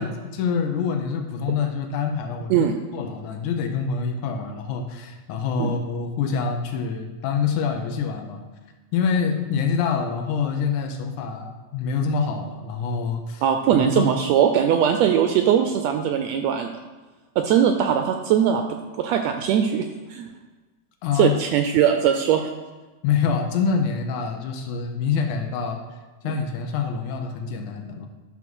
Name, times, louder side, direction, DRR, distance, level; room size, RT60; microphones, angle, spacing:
voice 1, 0.0-8.4 8.9-13.4 13.7-14.1 21.0-21.4 23.0-25.8 26.2-28.1, left 6 dB, 90° left, 4 dB, 2.2 m, -26 dB
voice 2, 13.4-16.7 17.4-18.6 19.0-20.3 21.1-22.5 26.2-26.3, right 9 dB, 80° right, 6 dB, 1.6 m, -20 dB
10.5 x 3.6 x 6.1 m, 1.2 s
omnidirectional pair, 3.4 m